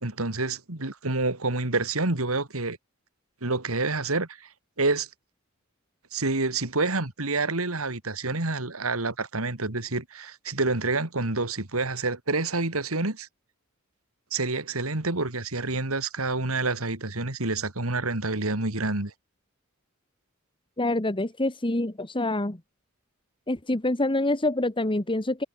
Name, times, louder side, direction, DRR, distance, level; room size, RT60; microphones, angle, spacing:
voice 1, 0.0-2.8 3.4-4.5 4.8-5.1 6.1-13.3 14.3-19.1, right 3 dB, 85° right, 2.8 m, -28 dB
voice 2, 20.8-22.6 23.5-25.4, left 2 dB, 25° left, 1.7 m, -26 dB
head